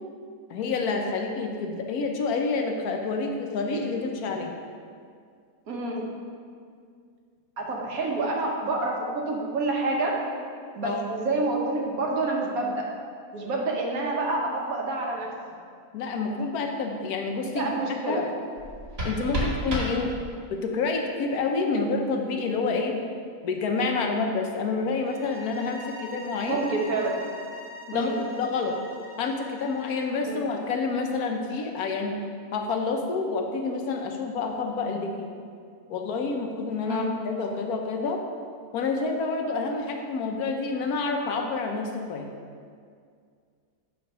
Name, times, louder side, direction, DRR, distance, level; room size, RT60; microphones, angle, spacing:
voice 1, 0.5-4.5 10.8-11.0 15.9-17.7 18.1-18.2 19.0-20.1 20.5-23.0 23.4-26.6 27.9-28.8 29.2-32.2 32.5-35.3 35.9-38.2 38.7-42.3, left 4 dB, 85° left, 3 dB, 1.2 m, -28 dB
voice 2, 5.7-6.1 7.6-10.2 10.7-12.8 13.3-15.3 17.4-18.3 26.5-27.2 27.9-28.2 30.3-30.4 36.8-37.1, right 2 dB, 75° right, -1 dB, 1.4 m, -28 dB
sound 1, 18.5-20.6, equal, 45° right, 1.5 m, -31 dB
sound 2, 25.0-30.2, left 1 dB, 60° left, 1.7 m, -43 dB
8.1 x 3.4 x 5.4 m, 2.2 s
omnidirectional pair, 1.5 m